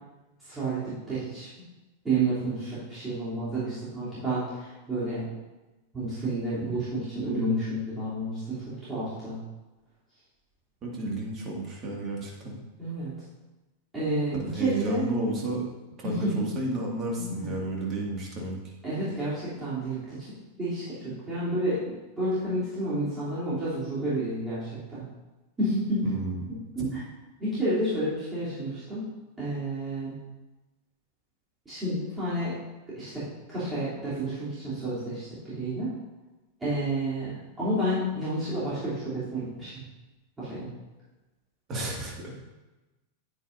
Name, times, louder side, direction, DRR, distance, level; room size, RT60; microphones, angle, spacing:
voice 1, 0.4-1.5 2.0-5.3 5.9-9.4 12.8-13.1 13.9-15.1 16.0-16.5 17.2-17.5 18.8-20.2 20.6-21.8 22.2-25.0 25.6-26.0 26.7-27.0 27.4-29.0 29.4-30.1 31.6-32.6 33.0-33.1 33.5-35.9 36.6-37.3 37.6-39.7 40.4-40.7, right 1 dB, 15° right, -12 dB, 3.1 m, -30 dB
voice 2, 10.8-12.5 14.4-15.6 16.0-18.5 26.0-26.5 41.7-42.3, right 2 dB, 30° right, -2 dB, 2.1 m, -32 dB
9.5 x 8.9 x 2.7 m, 1.1 s
figure-of-eight pair, 90°, 0 cm